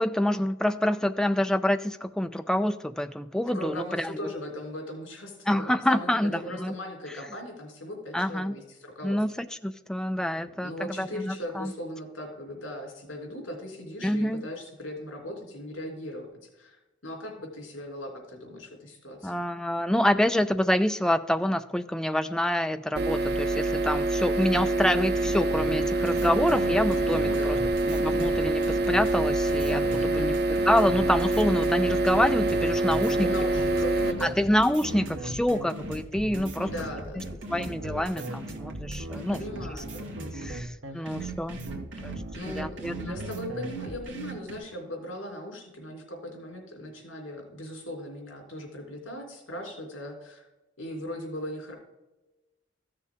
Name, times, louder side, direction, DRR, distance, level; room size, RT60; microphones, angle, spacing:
voice 1, 0.0-4.2 5.5-6.7 8.1-8.6 9.0-11.7 14.0-14.4 19.2-27.6 27.9-30.3 30.7-33.3 34.2-36.7 37.5-39.4 39.7-39.8 40.3-41.6 42.0-42.1 42.5-43.2, left 1 dB, 5° left, 9 dB, 0.3 m, -27 dB
voice 2, 3.5-9.2 10.4-19.4 24.3-24.7 27.3-27.5 29.9-30.4 33.0-34.5 36.5-37.4 39.1-40.6 40.9-41.0 41.6-41.9 42.3-50.5 50.8-51.7, equal, 80° left, 0 dB, 3.4 m, -39 dB
sound 1, 23.0-34.1, right 2 dB, 50° right, 0.6 m, -26 dB
sound 2, 25.1-43.7, right 1 dB, 90° right, 1.0 m, -39 dB
sound 3, 26.0-40.6 41.0-44.6, right 2 dB, 75° right, 1.8 m, -41 dB
14.5 x 6.7 x 3.6 m, 1.1 s
head